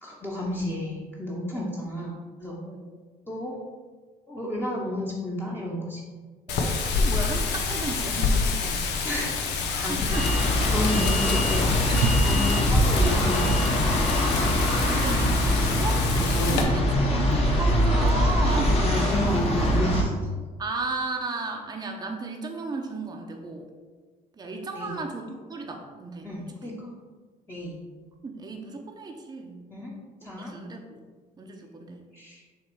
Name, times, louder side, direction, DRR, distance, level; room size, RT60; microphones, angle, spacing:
voice 1, 0.0-2.6 3.3-3.5 4.3-6.0 9.0-9.5 9.8-10.3 10.7-11.9 12.2-13.8 16.1-16.7 18.6-20.1 24.7-25.0 26.2-26.9 27.5-27.8 29.7-29.9 30.2-30.5 32.1-32.4, left 1 dB, 15° left, -5 dB, 1.0 m, -32 dB
Wind, 6.5-16.6, left 4 dB, 85° left, 0.8 m, -27 dB
voice 2, 7.0-8.9 9.9-10.3 14.9-16.0 16.5-16.7 17.0-18.8 20.6-23.7 24.4-26.3 26.6-26.7 28.2-29.6 30.4-30.8 31.4-32.1, right 3 dB, 25° right, 2 dB, 0.7 m, -34 dB
sound 1, 10.1-20.0, equal, 35° left, 1.3 m, -23 dB
Wild animals, 11.6-20.1, right 4 dB, 85° right, 0.7 m, -37 dB
6.6 x 3.2 x 4.6 m, 1.4 s
cardioid pair, 110°, 17 cm